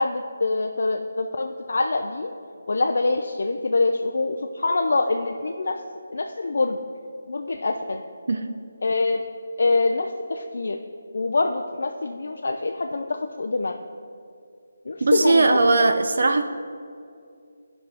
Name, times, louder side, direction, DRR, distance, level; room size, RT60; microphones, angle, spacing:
voice 1, 0.0-2.3 2.7-5.8 6.1-6.8 7.3-8.0 8.8-9.2 9.6-10.8 11.1-13.7 14.8-15.6, left 3 dB, 60° left, 3 dB, 0.4 m, -25 dB
voice 2, 15.0-16.4, right 3 dB, 55° right, 7 dB, 0.5 m, -19 dB
14.5 x 5.3 x 3.4 m, 2.4 s
hypercardioid pair, 175°, 0 cm